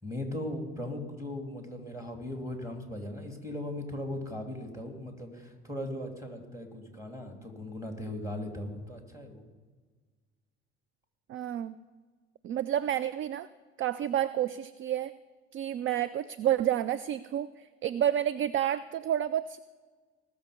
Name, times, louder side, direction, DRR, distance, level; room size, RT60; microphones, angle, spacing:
voice 1, 0.0-9.4, left 1 dB, 10° right, 3 dB, 3.1 m, -38 dB
voice 2, 11.3-11.7 12.4-13.5 13.8-15.1 15.5-19.6, right 11 dB, 45° right, 16 dB, 0.4 m, -30 dB
19.5 x 7.0 x 5.2 m, 1.5 s
hypercardioid pair, 60°, 29 cm